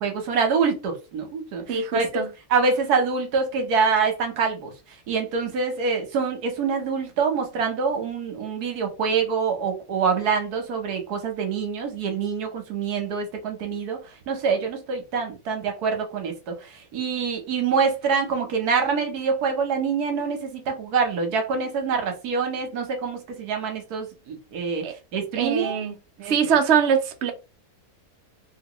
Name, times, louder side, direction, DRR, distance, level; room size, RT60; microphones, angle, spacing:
voice 1, 0.0-2.1 2.5-4.7 5.1-14.0 14.3-24.8 25.1-25.8 26.2-26.5, right 5 dB, 75° right, 1.4 m, -25 dB
voice 2, 1.7-2.3 24.8-24.9 25.4-26.0 26.2-27.3, right 7 dB, 55° right, 0.8 m, -22 dB
3.0 x 2.9 x 2.9 m
omnidirectional pair, 1.7 m